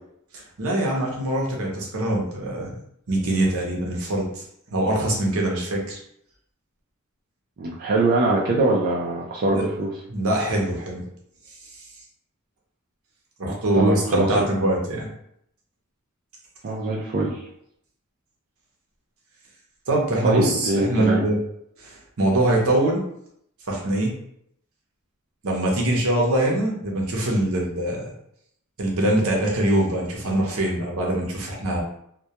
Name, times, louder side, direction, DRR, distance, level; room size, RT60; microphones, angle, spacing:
voice 1, 0.3-2.7 3.1-4.4 4.7-6.0 9.5-9.7 10.1-11.0 13.4-15.1 19.9-21.4 21.8-23.0 23.7-24.1 25.4-28.1 28.8-31.8, right 1 dB, 75° right, -1 dB, 0.7 m, -23 dB
voice 2, 7.6-9.9 13.5-14.4 16.6-17.4 20.2-21.2, right 2 dB, 45° right, -3 dB, 0.4 m, -23 dB
2.2 x 2.2 x 2.8 m, 0.72 s
head